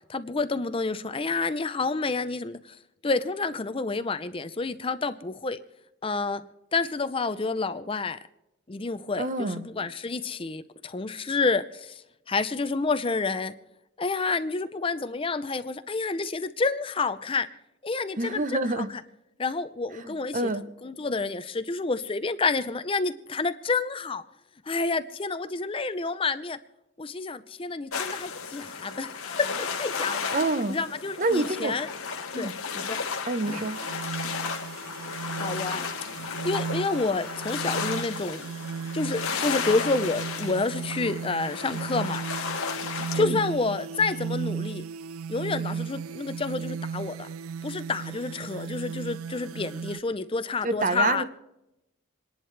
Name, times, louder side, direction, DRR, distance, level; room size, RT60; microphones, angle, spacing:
voice 1, 0.0-2.8 3.0-5.6 6.0-6.4 6.7-8.2 8.7-13.5 14.0-17.5 17.8-19.0 19.4-20.5 20.8-24.3 24.7-26.6 27.0-30.3 30.7-31.9 32.3-33.0 33.5-33.6 35.4-35.8 36.4-38.5 38.9-42.3 43.1-44.8 45.3-47.3 47.6-51.2, left 3 dB, 25° left, 12 dB, 0.5 m, -29 dB
voice 2, 9.2-9.6 18.2-18.9 20.0-20.6 30.3-30.8 31.2-31.7 32.3-32.5 33.3-33.8 43.2-43.4 50.6-51.2, right 2 dB, 35° right, 11 dB, 0.8 m, -27 dB
sound 1, 27.9-43.2, left 5 dB, 90° left, 1.6 m, -34 dB
sound 2, 33.5-50.0, right 6 dB, 85° right, 0.4 m, -36 dB
27.5 x 11.0 x 3.3 m, 0.90 s
head